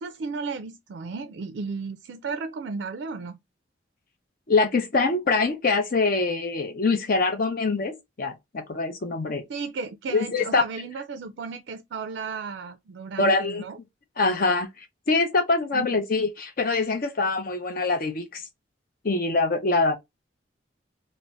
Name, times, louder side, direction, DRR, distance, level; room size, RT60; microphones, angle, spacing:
voice 1, 0.0-3.4 9.5-13.8 15.7-15.8, right 4 dB, 65° right, 0.3 m, -34 dB
voice 2, 4.5-9.4 10.1-10.6 13.2-13.6 14.2-18.4 19.0-20.0, left 3 dB, 50° left, 0.6 m, -24 dB
2.6 x 2.0 x 3.2 m
head